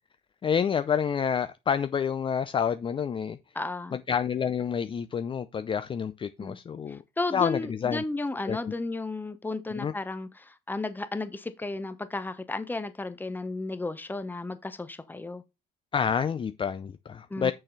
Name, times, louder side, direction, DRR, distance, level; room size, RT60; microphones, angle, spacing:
voice 1, 0.4-3.4 3.9-7.0 7.3-8.0 8.4-8.7 9.7-9.9 15.9-17.5, left 7 dB, 30° left, 0.5 m, -28 dB
voice 2, 3.5-4.0 6.4-6.6 7.2-15.4 17.3-17.5, left 2 dB, 10° left, 0.9 m, -33 dB
6.4 x 6.2 x 4.0 m
cardioid pair, 110°, 17 cm